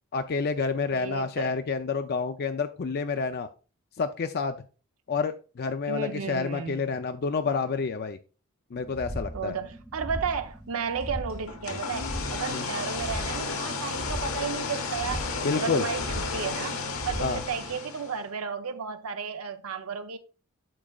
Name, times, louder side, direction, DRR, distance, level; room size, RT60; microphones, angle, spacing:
voice 1, 0.1-3.5 4.0-4.6 5.1-8.2 8.7-9.5 12.5-12.7 15.4-15.9 17.2-17.4, left 4 dB, 45° left, 0.4 m, -29 dB
voice 2, 0.9-1.5 5.9-6.8 9.3-15.2 15.5-16.0 16.3-16.7 17.0-20.2, right 6 dB, 70° right, 0.7 m, -33 dB
sound 1, 8.7-17.8, equal, 5° right, 0.8 m, -39 dB
sound 2, 11.5-18.2, left 4 dB, 70° left, 1.2 m, -33 dB
8.6 x 6.3 x 2.3 m
head